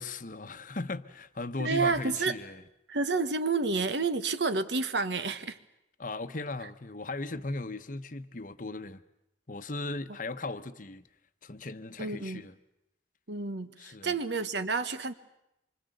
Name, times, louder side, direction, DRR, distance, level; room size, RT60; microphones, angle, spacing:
voice 1, 0.0-2.6 6.0-9.0 9.5-11.0 11.4-12.6 13.8-14.1, left 2 dB, 45° left, 1.0 m, -37 dB
voice 2, 1.6-2.3 2.9-5.6 12.0-12.4 13.3-15.1, right 4 dB, 70° right, 1.3 m, -30 dB
26.5 x 24.5 x 8.0 m
head